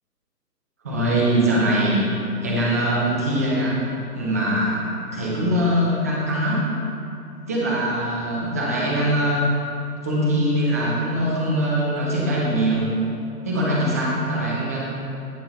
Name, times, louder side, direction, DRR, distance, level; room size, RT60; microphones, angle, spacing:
voice 1, 0.8-2.0 2.4-3.8 4.1-4.8 5.1-6.6 7.5-9.5 10.0-12.9 13.4-14.8, right 1 dB, 10° right, -5 dB, 0.8 m, -22 dB
16.0 x 5.8 x 4.2 m, 2.7 s
figure-of-eight pair, 145°, 49 cm